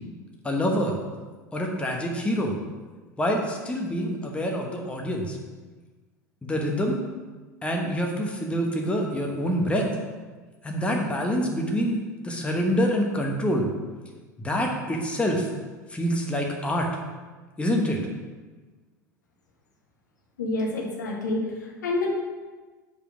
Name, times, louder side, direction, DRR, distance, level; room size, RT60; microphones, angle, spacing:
voice 1, 0.4-0.9 1.5-2.5 3.2-5.4 6.4-7.0 7.6-9.9 10.6-12.0 12.2-13.7 14.4-15.5 15.9-16.9 17.6-18.0, equal, 10° left, 0 dB, 1.2 m, -26 dB
voice 2, 20.4-22.1, left 2 dB, 75° left, -1 dB, 1.4 m, -28 dB
5.5 x 5.1 x 6.0 m, 1.3 s
figure-of-eight pair, 75°, 10 cm